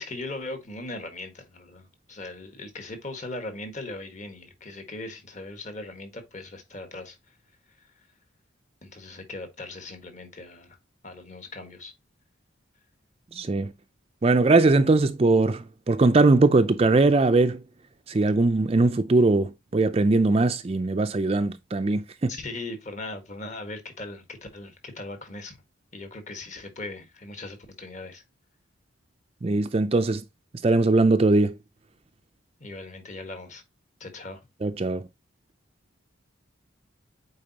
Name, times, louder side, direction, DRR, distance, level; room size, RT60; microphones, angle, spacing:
voice 1, 0.0-7.4 7.8-7.9 8.8-10.8 11.0-11.9 22.3-25.6 25.9-28.2 32.6-33.6 34.0-34.4, left 2 dB, 35° left, 1.5 m, -39 dB
voice 2, 13.3-13.7 14.2-17.6 18.1-22.3 29.4-30.2 30.6-31.5 34.6-35.1, right 3 dB, 30° right, 0.4 m, -21 dB
8.6 x 4.0 x 2.8 m
head